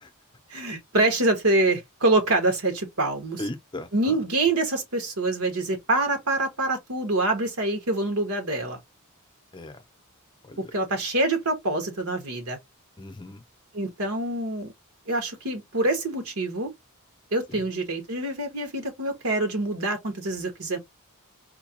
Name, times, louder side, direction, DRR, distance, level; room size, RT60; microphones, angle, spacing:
voice 1, 0.5-3.4 3.9-8.8 10.7-12.6 13.7-14.7 15.1-16.7 17.3-20.8, right 2 dB, 80° right, 1.4 m, -25 dB
voice 2, 3.4-4.2 9.5-9.8 10.4-10.7 13.0-13.4 17.5-17.6, left 1 dB, 20° left, 0.6 m, -37 dB
4.4 x 2.3 x 2.9 m
head